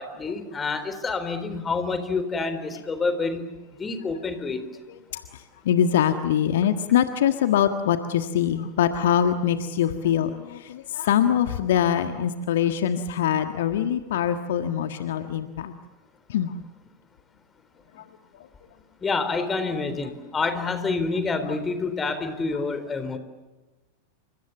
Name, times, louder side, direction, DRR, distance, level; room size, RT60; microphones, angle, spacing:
voice 1, 0.0-3.4 3.8-4.7 19.0-23.2, left 4 dB, 15° left, 10 dB, 4.0 m, -28 dB
voice 2, 4.9-15.7 16.3-16.5 17.9-18.1 18.3-18.5 21.5-21.6, left 9 dB, 55° left, 8 dB, 1.6 m, -24 dB
29.5 x 26.5 x 7.1 m, 1.2 s
figure-of-eight pair, 90°, 0 cm